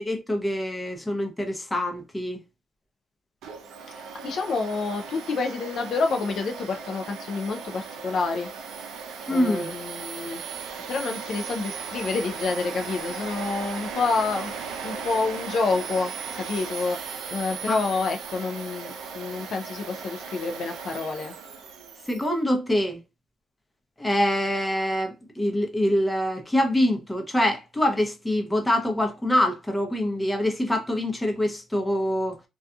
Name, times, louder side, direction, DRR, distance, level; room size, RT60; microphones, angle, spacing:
voice 1, 0.0-2.4 9.3-9.7 17.7-17.8 22.1-23.0 24.0-32.4, left 1 dB, 10° left, 0.7 m, -25 dB
Domestic sounds home sounds, 3.4-22.3, right 6 dB, 85° right, 0.5 m, -37 dB
voice 2, 3.9-8.5 9.3-10.4 10.9-21.3, left 4 dB, 60° left, 0.4 m, -28 dB
2.7 x 2.3 x 2.3 m
cardioid pair, 90°, 0 cm